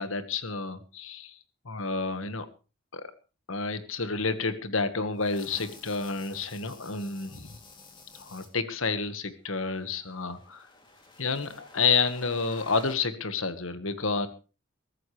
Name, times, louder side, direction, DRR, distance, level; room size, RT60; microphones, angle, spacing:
voice 1, 0.0-1.3 1.6-2.5 2.9-3.1 3.5-7.6 8.2-10.6 11.2-14.3, left 4 dB, 70° left, 10 dB, 1.6 m, -30 dB
sound 1, 5.2-8.5 9.6-13.0, left 3 dB, 20° left, 2.8 m, -51 dB
22.5 x 13.5 x 3.3 m, 0.34 s
head